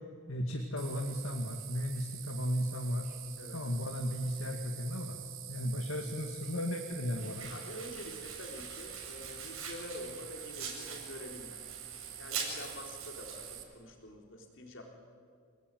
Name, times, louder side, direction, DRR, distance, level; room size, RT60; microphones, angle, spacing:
voice 1, 0.3-3.2 3.5-5.2 5.5-7.5, equal, 80° left, 4 dB, 2.1 m, -35 dB
sound 1, 0.8-13.6, right 11 dB, 70° right, 2.5 m, -47 dB
Domestic sounds home sounds, 7.1-13.5, right 5 dB, 85° right, 7.2 m, -44 dB
voice 2, 7.4-11.6 12.2-14.8, left 1 dB, 65° left, 2 dB, 4.1 m, -47 dB
29.0 x 19.0 x 9.3 m, 2.1 s
head